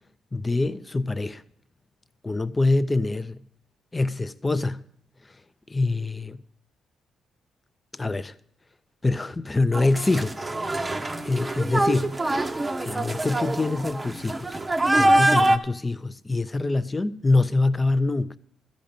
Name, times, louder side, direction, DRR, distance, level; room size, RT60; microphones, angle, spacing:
voice 1, 0.3-1.4 2.2-3.4 3.9-4.9 5.7-6.4 7.9-8.3 9.0-10.6 11.0-12.2 12.8-14.6 14.9-18.4, left 2 dB, 20° left, 0.5 m, -25 dB
sound 1, 9.7-15.6, right 1 dB, 20° right, 0.8 m, -24 dB
13.5 x 5.3 x 8.7 m
cardioid pair, 90°, 0 cm